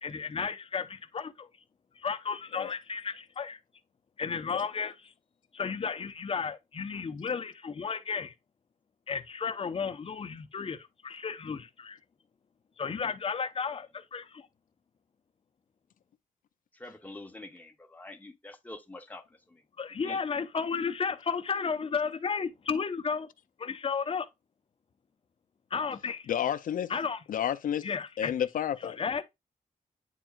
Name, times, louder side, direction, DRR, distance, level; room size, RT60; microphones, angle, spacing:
voice 1, 0.0-1.5 2.0-3.6 4.2-5.1 5.5-8.3 9.1-12.0 12.8-14.5 19.8-23.3 23.6-24.3 25.7-26.3 26.9-27.2 27.8-28.3 28.8-29.2, left 5 dB, 45° left, 0.8 m, -33 dB
voice 2, 16.7-19.6 20.0-20.2, left 2 dB, 10° left, 1.0 m, -46 dB
voice 3, 26.3-26.9 27.3-27.9 28.2-29.0, left 10 dB, 85° left, 0.5 m, -30 dB
9.1 x 4.5 x 2.3 m
wide cardioid pair, 130°, 14 cm